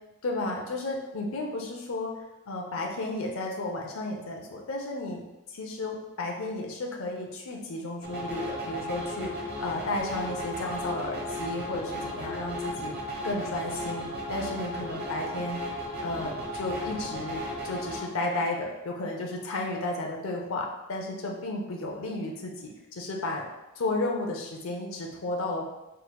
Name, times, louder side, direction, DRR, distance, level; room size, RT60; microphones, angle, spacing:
voice 1, 0.2-2.1 2.5-5.2 5.5-12.9 13.2-15.6 16.0-23.4 23.8-25.6, left 2 dB, 65° left, 0 dB, 0.6 m, -33 dB
sound 1, 8.0-18.0, left 1 dB, 45° right, 0.9 m, -35 dB
4.4 x 3.8 x 2.2 m, 0.99 s
head